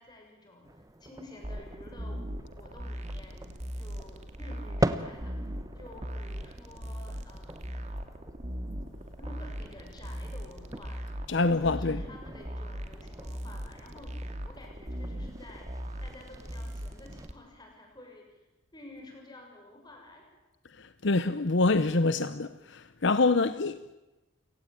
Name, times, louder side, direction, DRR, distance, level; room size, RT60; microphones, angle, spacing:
voice 1, 0.0-2.2 2.6-5.4 5.7-7.8 9.2-11.0 11.3-14.2 14.4-15.7 16.0-18.4 18.7-20.3, left 1 dB, 20° left, 6.7 m, -51 dB
sound 1, 0.6-17.3, right 1 dB, 15° right, 0.9 m, -41 dB
sound 2, 1.4-17.3, equal, 35° right, 2.5 m, -39 dB
voice 2, 11.3-12.0 20.8-23.9, left 3 dB, 60° left, 0.8 m, -26 dB
29.0 x 18.0 x 9.0 m
head